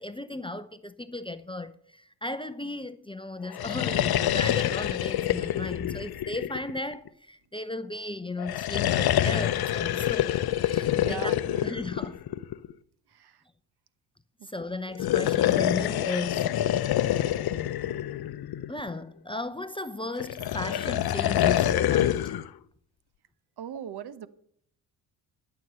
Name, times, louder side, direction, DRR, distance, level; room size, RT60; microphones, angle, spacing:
voice 1, 0.0-10.3 10.6-11.3 11.6-12.2 14.4-16.5 18.7-22.4, left 2 dB, 10° left, 0.7 m, -35 dB
sound 1, 3.5-7.1 8.4-12.7 14.9-18.9 20.2-22.5, left 12 dB, 50° left, 0.8 m, -26 dB
voice 2, 10.9-11.7 13.1-13.4 14.4-14.5 23.6-24.3, right 9 dB, 50° right, 1.1 m, -39 dB
13.5 x 7.0 x 7.7 m
hypercardioid pair, 60°, 49 cm